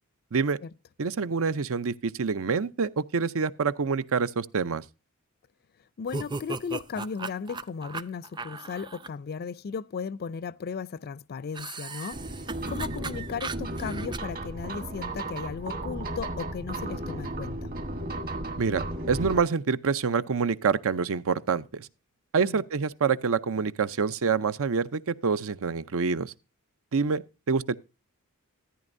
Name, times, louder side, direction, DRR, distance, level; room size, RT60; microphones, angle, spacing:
voice 1, 1.0-4.8 18.6-21.9 22.3-26.3 26.9-27.7, right 5 dB, 65° right, 0.6 m, -27 dB
voice 2, 6.0-12.2 12.7-17.7 22.5-22.6, left 6 dB, 45° left, 0.4 m, -36 dB
sound 1, 6.1-9.1 11.5-14.2, right 3 dB, 20° right, 0.5 m, -37 dB
sound 2, 12.1-19.4, right 1 dB, 40° right, 1.5 m, -34 dB
14.0 x 9.8 x 2.6 m
head